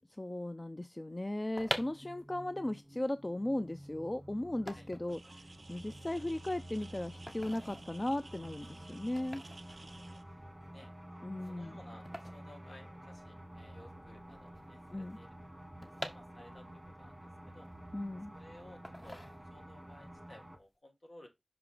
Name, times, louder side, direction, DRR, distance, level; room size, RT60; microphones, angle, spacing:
voice 1, 0.1-9.4 11.2-11.8 14.9-15.2 17.9-18.3, left 1 dB, 35° left, 0.3 m, -37 dB
sound 1, 1.3-13.4 13.7-13.8 14.0-16.8 17.3-18.3 18.8-19.8 20.2-20.5, equal, 20° left, 1.1 m, -46 dB
sound 2, 1.6-20.6, right 1 dB, 15° right, 1.8 m, -51 dB
sound 3, 5.1-10.2, right 3 dB, 70° right, 0.3 m, -55 dB
voice 2, 9.7-10.9 11.5-15.7 16.1-17.7 18.3-21.3, left 1 dB, 65° left, 2.0 m, -58 dB
5.9 x 4.8 x 3.8 m
wide cardioid pair, 50°, 0 cm